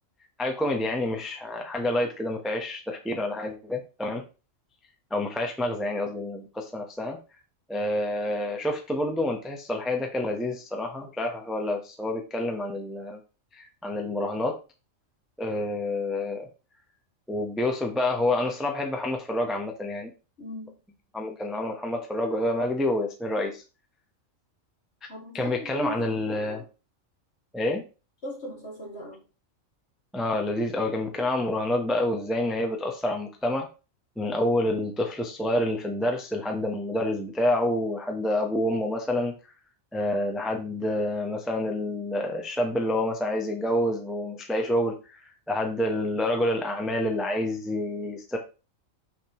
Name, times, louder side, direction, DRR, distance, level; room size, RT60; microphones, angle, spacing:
voice 1, 0.4-4.2 5.1-7.2 7.7-13.2 13.5-14.6 15.4-16.5 17.3-20.1 21.1-23.6 25.3-26.6 27.5-27.8 30.1-33.7 34.2-39.3 39.9-48.4, left 1 dB, ahead, 0.8 m, -28 dB
voice 2, 20.4-20.8 25.1-26.0 26.3-26.6 28.2-29.2, equal, 50° left, 2.5 m, -38 dB
6.6 x 6.2 x 3.0 m
omnidirectional pair, 1.4 m